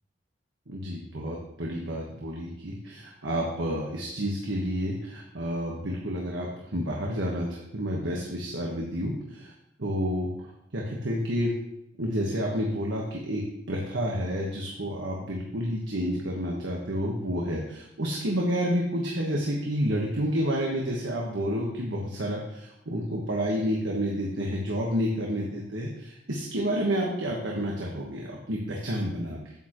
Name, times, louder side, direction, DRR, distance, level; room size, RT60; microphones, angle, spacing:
voice 1, 0.7-9.5 9.8-11.5 12.0-29.5, equal, 80° right, -2 dB, 1.4 m, -30 dB
9.0 x 8.8 x 3.1 m, 0.81 s
head